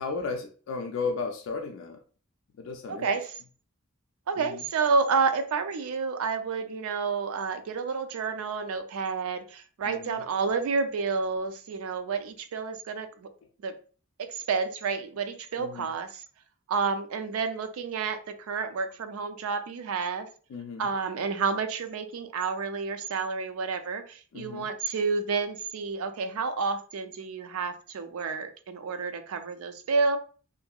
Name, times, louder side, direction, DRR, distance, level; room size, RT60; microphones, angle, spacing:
voice 1, 0.0-2.0 2.6-3.1 4.4-4.6 9.8-10.2 15.6-15.9 20.5-20.9 24.3-24.7, left 4 dB, 65° left, 3 dB, 0.3 m, -35 dB
voice 2, 2.9-3.3 4.3-13.3 13.6-13.8 14.2-16.2 16.7-20.3 20.8-30.2, right 4 dB, 90° right, 8 dB, 0.4 m, -30 dB
2.7 x 2.5 x 2.3 m, 0.40 s
head